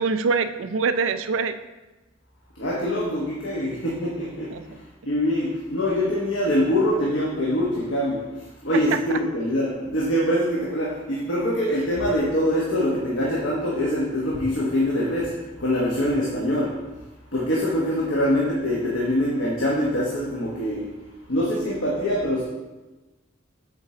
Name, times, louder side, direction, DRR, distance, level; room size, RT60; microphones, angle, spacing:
voice 1, 0.0-1.6 4.5-4.6 8.7-9.2, right 5 dB, 75° right, 11 dB, 0.4 m, -24 dB
voice 2, 2.6-4.7 5.0-16.8 17.3-20.9 21.3-22.4, equal, 70° left, -5 dB, 1.1 m, -24 dB
7.4 x 4.3 x 3.7 m, 1.1 s
head